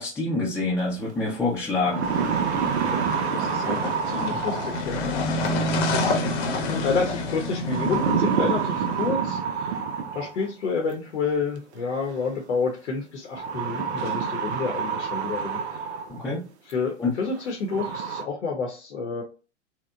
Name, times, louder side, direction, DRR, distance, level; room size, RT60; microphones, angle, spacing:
voice 1, 0.0-2.1 16.1-16.4 17.0-17.1, left 3 dB, 5° left, -8 dB, 0.5 m, -26 dB
sound 1, 1.1-1.2 1.7-5.1 6.5-6.9 7.7-10.5 11.7-11.8 13.3-16.2 16.7-16.8 17.3-17.4 17.7-18.2, right 6 dB, 60° right, 0.6 m, -27 dB
sound 2, 2.0-9.0, left 2 dB, 40° left, 0.8 m, -28 dB
voice 2, 2.9-6.2 6.7-9.9 10.1-15.8 16.7-19.2, left 4 dB, 70° left, 1 dB, 0.7 m, -30 dB
2.8 x 2.1 x 2.3 m, 0.33 s
figure-of-eight pair, 100°, 37 cm